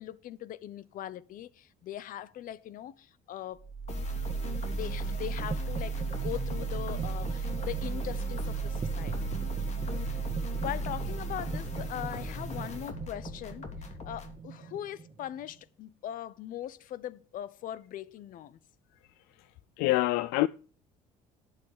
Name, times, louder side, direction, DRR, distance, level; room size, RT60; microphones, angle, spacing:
voice 1, 0.0-3.7 4.7-9.3 10.0-13.7 14.0-18.6, left 12 dB, 60° left, 1.0 m, -40 dB
sound 1, 3.6-15.5, right 5 dB, 30° right, 1.7 m, -35 dB
sound 2, 3.9-14.4, left 3 dB, 45° left, 2.9 m, -41 dB
voice 2, 19.2-20.5, left 18 dB, 80° left, 0.5 m, -28 dB
11.5 x 8.6 x 5.0 m
supercardioid pair, 85°, 16 cm